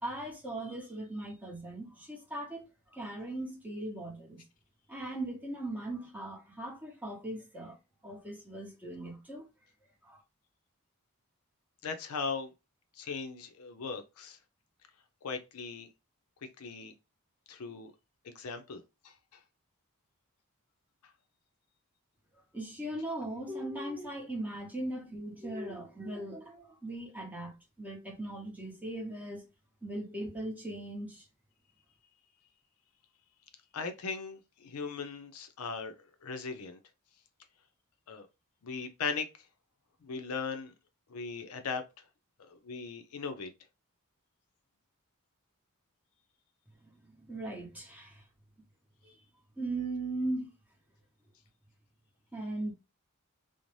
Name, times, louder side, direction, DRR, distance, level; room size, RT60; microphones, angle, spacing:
voice 1, 0.0-4.4 4.9-7.8 8.0-9.4 10.0-10.2 22.5-29.4 29.8-31.2 46.8-48.2 49.0-49.2 49.6-50.5 52.3-52.7, right 1 dB, 5° right, 0.8 m, -39 dB
voice 2, 11.8-12.5 13.0-14.4 15.2-15.9 16.6-16.9 17.5-17.9 18.2-19.1 33.7-36.0 36.2-36.8 38.1-38.3 38.6-39.3 40.0-40.7 41.1-41.8 42.4-43.5, left 5 dB, 80° left, 0.5 m, -38 dB
2.6 x 2.0 x 3.0 m
head